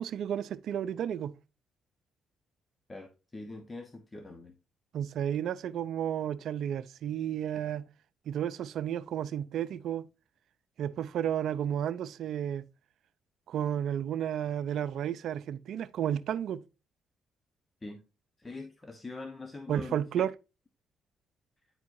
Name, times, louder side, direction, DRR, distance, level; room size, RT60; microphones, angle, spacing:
voice 1, 0.0-1.4 4.9-7.9 8.3-10.0 10.8-12.6 13.5-16.6 19.7-20.3, right 9 dB, 70° right, 0.5 m, -32 dB
voice 2, 2.9-4.5 17.8-18.0 18.4-20.0, left 3 dB, 25° left, 1.0 m, -43 dB
9.5 x 4.6 x 2.6 m
supercardioid pair, 60°, 0 cm